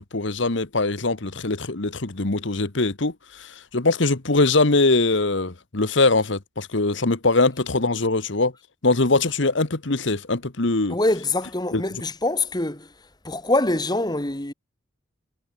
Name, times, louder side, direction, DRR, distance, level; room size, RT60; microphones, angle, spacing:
voice 1, 0.0-8.5 8.8-11.0 11.7-11.8, left 3 dB, 60° left, 1.4 m, -22 dB
voice 2, 10.9-12.9 13.2-14.5, left 2 dB, 20° left, 1.8 m, -24 dB
head